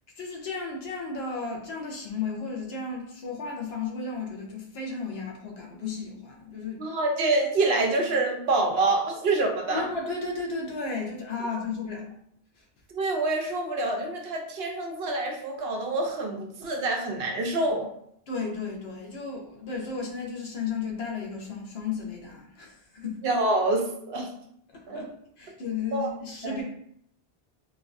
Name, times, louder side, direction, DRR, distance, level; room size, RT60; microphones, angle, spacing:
voice 1, 0.2-6.8 9.7-12.1 18.3-23.2 24.7-25.1 25.4-26.6, left 4 dB, 80° left, 0 dB, 1.0 m, -34 dB
voice 2, 6.8-9.9 12.9-17.9 23.2-24.3 24.9-25.1 25.9-26.1 26.4-26.6, right 2 dB, 80° right, 2 dB, 0.9 m, -26 dB
3.8 x 2.3 x 2.5 m, 0.70 s
omnidirectional pair, 1.0 m